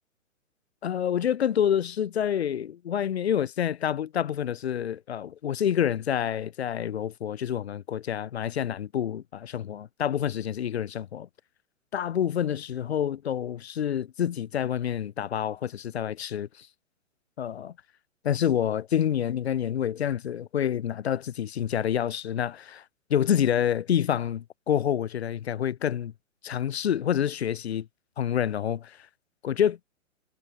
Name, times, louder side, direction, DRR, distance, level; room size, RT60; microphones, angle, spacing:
voice 1, 0.8-11.3 11.9-16.7 17.4-17.7 18.2-22.8 23.1-26.1 26.4-27.9 28.2-29.0 29.4-29.8, left 9 dB, 55° left, 0.5 m, -27 dB
figure-of-eight pair, 120°, 39 cm